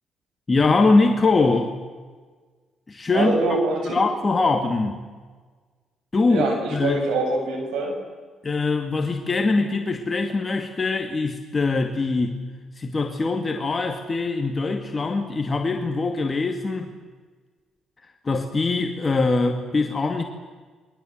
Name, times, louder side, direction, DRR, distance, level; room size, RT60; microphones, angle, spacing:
voice 1, 0.5-1.8 2.9-3.4 3.8-5.1 6.1-7.0 8.4-12.4 12.8-17.0 18.2-20.2, left 3 dB, 30° left, 4 dB, 2.4 m, -22 dB
voice 2, 3.1-4.0 6.3-8.0, right 3 dB, 85° right, 3 dB, 7.5 m, -24 dB
29.0 x 23.5 x 8.1 m, 1.4 s
cardioid pair, 90°, 0 cm